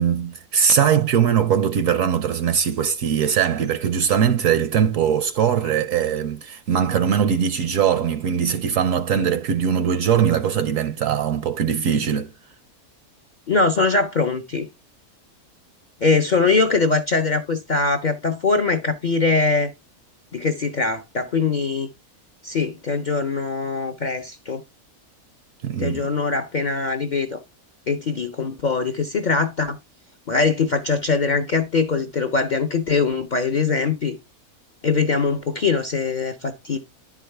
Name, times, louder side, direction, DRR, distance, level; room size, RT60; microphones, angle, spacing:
voice 1, 0.0-12.3 25.6-26.1, right 8 dB, 70° right, 0.9 m, -21 dB
voice 2, 13.5-14.7 16.0-19.7 20.3-21.9 22.4-24.6 25.8-27.4 27.9-29.8 30.3-34.1 34.8-36.8, left 4 dB, 55° left, 0.5 m, -22 dB
11.0 x 4.8 x 3.3 m
omnidirectional pair, 1.5 m